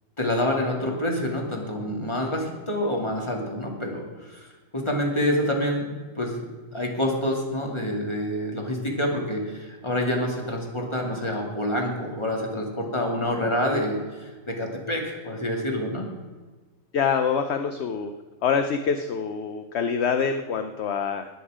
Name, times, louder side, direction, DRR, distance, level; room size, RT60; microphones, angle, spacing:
voice 1, 0.2-4.5 4.7-5.9 6.2-16.1, left 1 dB, 20° left, 0 dB, 2.5 m, -27 dB
voice 2, 16.9-18.1 18.4-21.3, left 6 dB, 60° left, 8 dB, 1.0 m, -25 dB
20.0 x 8.1 x 5.0 m, 1.4 s
omnidirectional pair, 1.4 m